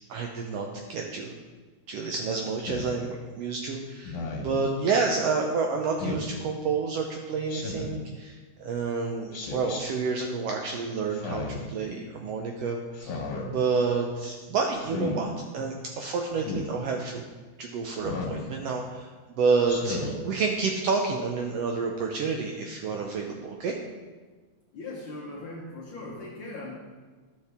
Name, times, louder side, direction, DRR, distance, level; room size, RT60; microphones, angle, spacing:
voice 1, 0.1-1.3 1.9-17.2 17.6-23.8, right 4 dB, 75° right, 2 dB, 1.4 m, -29 dB
Speech synthesizer, 2.6-2.9 4.0-4.6 6.0-6.3 7.5-8.0 9.3-9.8 11.1-11.7 12.9-13.5 14.8-15.2 16.4-16.7 18.0-18.4 19.7-20.2, left 3 dB, 80° left, 2.6 m, -34 dB
voice 2, 24.7-26.7, left 2 dB, 60° left, -4 dB, 1.5 m, -39 dB
12.0 x 5.6 x 3.4 m, 1.3 s
omnidirectional pair, 3.4 m